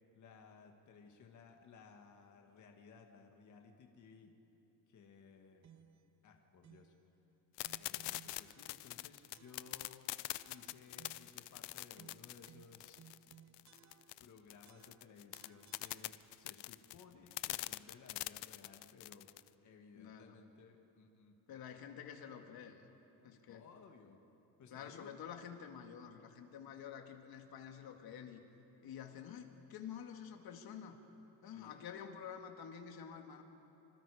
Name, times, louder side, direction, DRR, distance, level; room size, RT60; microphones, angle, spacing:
voice 1, 0.1-4.3 4.9-5.6 6.2-6.9 7.8-10.1 10.5-13.1 13.9-19.3 19.6-21.4 23.5-24.2 24.6-25.2 31.5-31.8, left 5 dB, 45° left, 3 dB, 1.9 m, -59 dB
sound 1, 5.6-6.1 6.6-7.0 7.6-9.0 9.3-9.9 10.3-11.4 11.9-14.3 14.6-16.5, right 8 dB, 40° right, 1.0 m, -63 dB
sound 2, 7.6-19.5, left 18 dB, 85° left, 0.6 m, -44 dB
voice 2, 20.0-20.4 21.5-22.9 23.2-23.7 24.7-28.4 28.8-31.0 31.4-33.4, left 8 dB, 60° left, 4 dB, 2.1 m, -49 dB
26.0 x 26.0 x 5.0 m, 3.0 s
cardioid pair, 145°, 41 cm